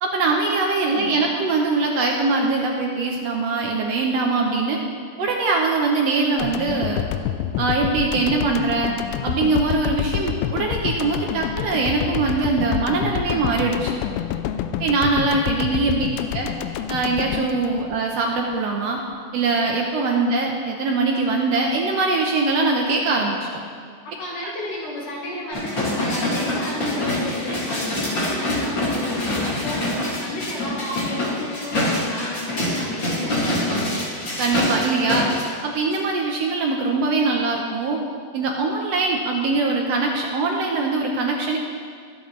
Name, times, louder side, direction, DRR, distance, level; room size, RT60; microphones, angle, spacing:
voice 1, 0.0-4.8 5.2-7.1 7.6-9.0 9.2-13.9 14.8-16.1 16.3-16.5 16.9-19.0 19.3-23.4 34.4-35.3 35.6-38.0 38.3-41.6, right 3 dB, 80° right, 0 dB, 1.4 m, -22 dB
voice 2, 0.8-1.2 15.7-16.0 24.2-34.1, left 1 dB, 65° left, -5 dB, 2.9 m, -32 dB
sound 1, 6.4-18.6, left 10 dB, 85° left, 2.4 m, -28 dB
sound 2, 25.5-35.4 35.9-36.0, left 1 dB, 35° left, 2.6 m, -25 dB
23.0 x 7.7 x 3.2 m, 2.1 s
omnidirectional pair, 4.2 m